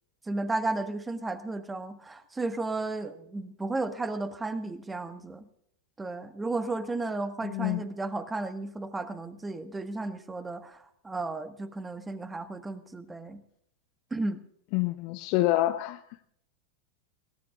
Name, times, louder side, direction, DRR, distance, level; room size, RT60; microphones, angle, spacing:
voice 1, 0.3-5.5 6.0-13.4 14.1-14.4, right 2 dB, 10° right, 10 dB, 1.5 m, -34 dB
voice 2, 7.4-7.9 14.7-16.0, left 16 dB, 45° left, 9 dB, 0.7 m, -27 dB
21.0 x 18.0 x 2.4 m, 0.68 s
figure-of-eight pair, 90°, 0 cm